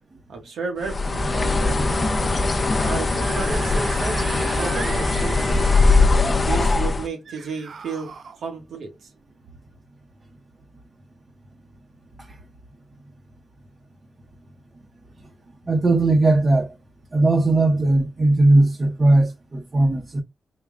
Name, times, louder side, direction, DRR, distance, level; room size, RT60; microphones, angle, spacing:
voice 1, 0.3-1.8 2.8-5.6 6.4-9.1, right 4 dB, 80° right, 0.9 m, -32 dB
Bird, 0.8-7.1, left 3 dB, 35° left, 0.6 m, -20 dB
Screaming / Screech, 3.1-6.3 7.3-8.4, right 5 dB, 60° right, 0.4 m, -37 dB
voice 2, 15.7-16.7 17.1-20.2, right 2 dB, 35° right, 0.8 m, -18 dB
3.7 x 2.2 x 3.5 m
cardioid pair, 75°, 0 cm